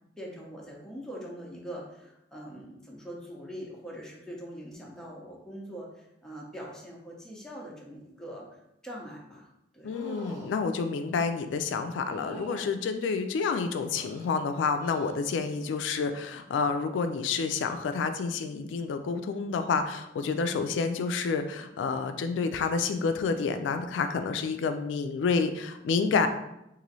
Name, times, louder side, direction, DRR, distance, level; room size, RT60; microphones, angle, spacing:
voice 1, 0.2-10.0, equal, 5° left, -3 dB, 0.7 m, -43 dB
voice 2, 9.8-26.3, left 5 dB, 80° left, 8 dB, 0.3 m, -29 dB
sound 1, 9.9-10.5 12.0-12.7 13.5-14.3 14.8-15.2 15.6-16.0 17.6-17.7, right 1 dB, 20° right, 1.3 m, -45 dB
3.0 x 2.6 x 4.0 m, 0.86 s
head